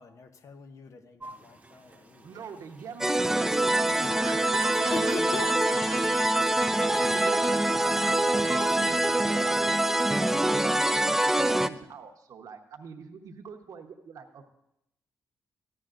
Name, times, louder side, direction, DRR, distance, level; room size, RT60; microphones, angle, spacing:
voice 1, 0.0-2.5 4.7-5.5, left 5 dB, 60° left, 7 dB, 0.9 m, -41 dB
sound 1, 1.2-9.5, right 1 dB, 25° right, 1.0 m, -47 dB
voice 2, 2.2-5.6 5.9-6.0 6.9-9.8 10.2-14.4, right 6 dB, 65° right, 5 dB, 1.0 m, -44 dB
sound 2, 3.0-11.7, right 1 dB, 5° right, 0.4 m, -25 dB
voice 3, 4.0-6.9 8.1-9.9, right 8 dB, 90° right, 2 dB, 1.2 m, -42 dB
Telephone, 4.7-5.4 5.7-9.4, left 1 dB, 35° left, 2.0 m, -45 dB
13.5 x 11.0 x 2.5 m, 0.82 s
cardioid pair, 75°, 6 cm